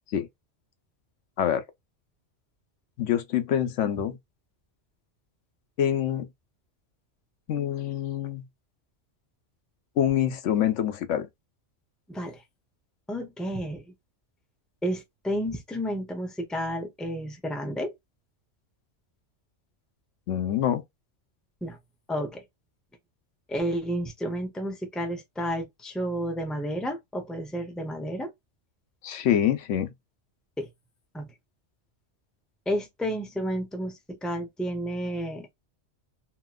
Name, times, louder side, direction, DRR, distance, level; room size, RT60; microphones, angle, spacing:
voice 1, 3.0-4.2 5.8-6.3 7.5-8.4 10.0-11.3 20.3-20.8 29.0-29.9, left 10 dB, 90° left, 1.0 m, -25 dB
voice 2, 13.1-13.8 14.8-17.9 21.6-21.8 22.1-22.4 23.5-28.3 30.6-30.7 31.1-31.3 32.7-35.5, equal, ahead, 0.6 m, -31 dB
2.9 x 2.9 x 2.3 m
omnidirectional pair, 1.2 m